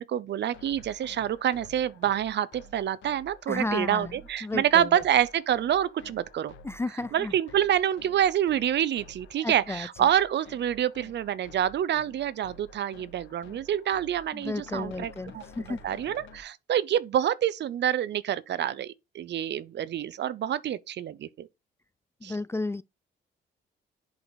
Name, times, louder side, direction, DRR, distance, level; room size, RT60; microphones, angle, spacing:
voice 1, 0.0-6.5 7.1-15.4 15.8-21.5 22.2-22.4, right 10 dB, 60° right, 0.7 m, -27 dB
sound 1, 0.5-16.4, left 2 dB, 75° left, 1.8 m, -51 dB
voice 2, 3.5-4.1 4.4-5.0 6.6-7.3 9.4-9.9 14.3-15.8 22.2-22.8, left 2 dB, 15° left, 0.4 m, -33 dB
10.5 x 4.8 x 4.1 m
cardioid pair, 90°, 20 cm